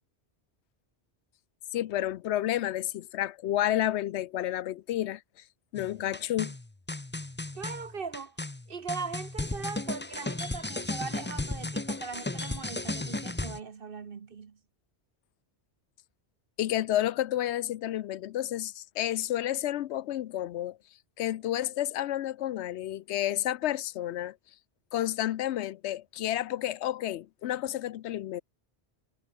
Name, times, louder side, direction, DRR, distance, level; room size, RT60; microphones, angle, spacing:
voice 1, 1.7-5.2 5.7-6.5 16.6-20.8 21.2-24.4 24.9-28.4, left 13 dB, 80° left, 0.8 m, -30 dB
sound 1, 5.8-13.6, left 2 dB, 10° left, 0.6 m, -35 dB
voice 2, 7.5-8.4 8.7-14.6, right 5 dB, 55° right, 1.2 m, -39 dB
omnidirectional pair, 1.1 m